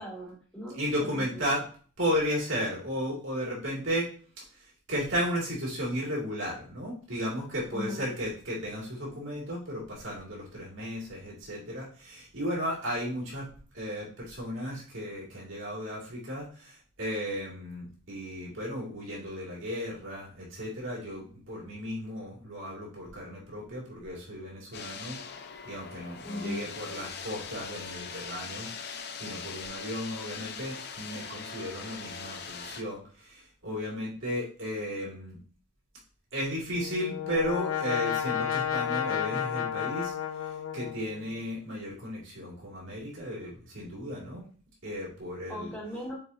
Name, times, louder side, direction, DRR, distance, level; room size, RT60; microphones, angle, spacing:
voice 1, 0.0-1.4 7.7-8.1 26.2-26.6 45.5-46.2, left 1 dB, 5° left, -7 dB, 3.3 m, -38 dB
voice 2, 0.7-1.6 2.0-4.1 4.5-13.5 13.7-25.2 25.6-35.4 36.3-44.4 44.8-45.7, equal, 65° right, -5 dB, 2.8 m, -34 dB
sound 1, 24.7-32.8, left 5 dB, 50° left, 0.7 m, -41 dB
Brass instrument, 36.6-41.3, left 9 dB, 80° left, 0.9 m, -32 dB
7.0 x 4.7 x 2.9 m, 0.41 s
head